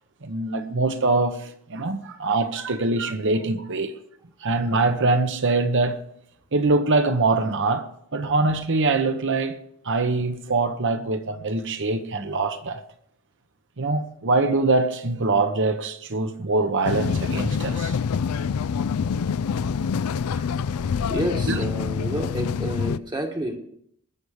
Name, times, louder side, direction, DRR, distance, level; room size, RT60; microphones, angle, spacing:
voice 1, 0.2-3.9 4.4-6.0 6.5-9.6 9.8-12.8 13.8-18.0 21.5-21.6, right 3 dB, 55° right, 1.0 m, -23 dB
sound 1, 16.8-23.0, left 6 dB, 75° left, 0.4 m, -26 dB
voice 2, 21.1-23.6, right 1 dB, 20° right, 1.3 m, -30 dB
20.0 x 7.1 x 4.9 m
head